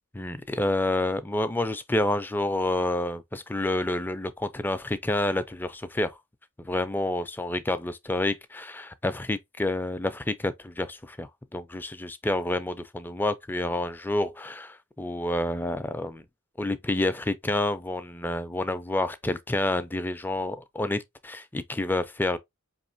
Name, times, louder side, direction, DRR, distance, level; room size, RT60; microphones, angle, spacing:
voice 1, 0.1-6.2 6.6-16.2 16.6-22.4, left 1 dB, 10° left, 0.3 m, -29 dB
4.9 x 3.1 x 2.5 m
head